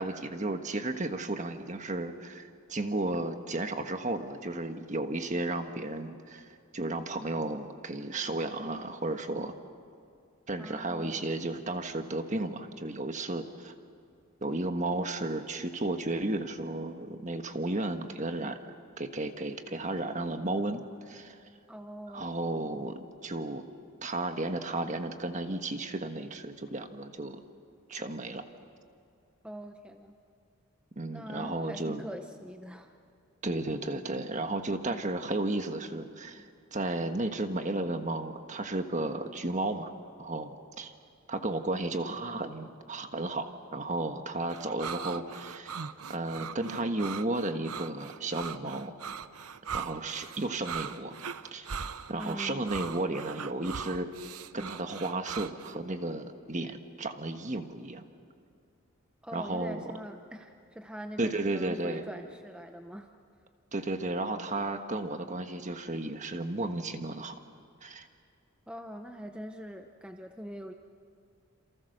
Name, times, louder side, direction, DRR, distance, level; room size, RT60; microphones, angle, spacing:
voice 1, 0.0-9.5 10.5-13.7 14.4-18.6 19.0-21.4 22.1-23.6 24.0-27.4 27.9-28.4 31.0-32.0 33.4-39.9 40.2-40.9 41.3-45.8 46.1-48.9 49.7-51.1 51.5-51.7 52.1-54.1 54.5-58.0 59.3-59.9 61.2-62.0 63.7-67.4 67.8-68.1, right 2 dB, 35° right, 7 dB, 1.4 m, -33 dB
voice 2, 10.6-11.2 21.7-22.3 29.4-30.1 31.1-32.9 52.2-52.7 59.2-63.1 68.7-70.7, equal, 5° right, 5 dB, 0.8 m, -43 dB
sound 1, 44.5-55.8, right 6 dB, 85° right, 0.8 m, -40 dB
28.5 x 28.0 x 6.7 m, 2.4 s
head